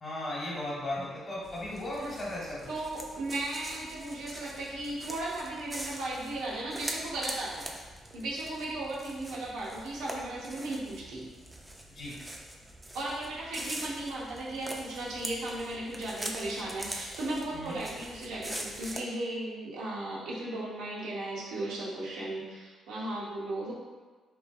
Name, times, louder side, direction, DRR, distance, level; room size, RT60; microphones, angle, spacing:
voice 1, 0.0-2.7 11.9-12.2 17.5-17.8, left 1 dB, 40° left, -6 dB, 1.0 m, -36 dB
sound 1, 1.4-19.0, right 1 dB, 15° right, 0.3 m, -43 dB
voice 2, 2.7-7.7 8.1-11.2 12.9-23.7, right 2 dB, 90° right, -5 dB, 0.7 m, -36 dB
3.0 x 2.2 x 2.4 m, 1.4 s
cardioid pair, 90°, 0 cm